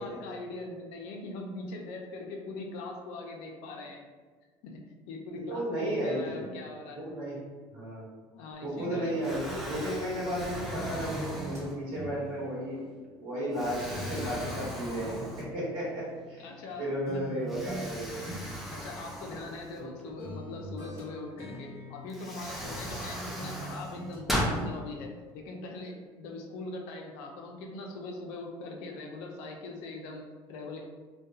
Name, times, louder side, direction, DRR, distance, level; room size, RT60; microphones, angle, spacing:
voice 1, 0.0-4.0 4.6-4.8 5.1-7.0 8.3-9.4 16.3-16.9 17.1-17.2 18.3-18.4 18.7-30.8, left 2 dB, 90° left, 1 dB, 0.4 m, -41 dB
voice 2, 5.5-6.4 6.9-7.3 7.7-8.1 8.6-12.8 13.2-16.5 16.8-18.2 19.8-19.9, equal, 60° right, -8 dB, 1.0 m, -34 dB
Explosion, 8.5-8.9 9.2-12.1 12.7-12.8 13.5-15.8 16.1-16.2 17.5-20.1 21.5-21.6 22.1-24.6, equal, ahead, 0.3 m, -37 dB
sound 1, 8.8-10.4 10.7-13.6 13.9-16.7 17.1-17.9 18.2-19.9 20.2-23.1 23.4-24.3 24.5-24.7, right 1 dB, 25° right, 0.7 m, -44 dB
2.6 x 2.2 x 2.3 m, 1.4 s
cardioid pair, 160°, 10 cm